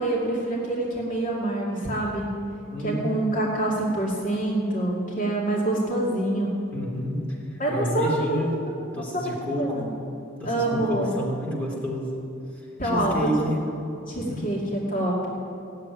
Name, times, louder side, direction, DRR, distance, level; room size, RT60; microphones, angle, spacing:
voice 1, 0.0-2.3 2.8-6.5 7.6-8.4 9.0-9.3 9.6-9.9 10.4-11.1 12.8-13.5 14.0-15.3, right 1 dB, 40° left, -4 dB, 2.4 m, -26 dB
voice 2, 2.7-3.1 6.7-8.5 8.9-9.9 10.4-12.2 12.8-13.6 14.3-14.6, equal, 5° left, -5 dB, 3.1 m, -29 dB
16.5 x 7.7 x 9.8 m, 2.8 s
head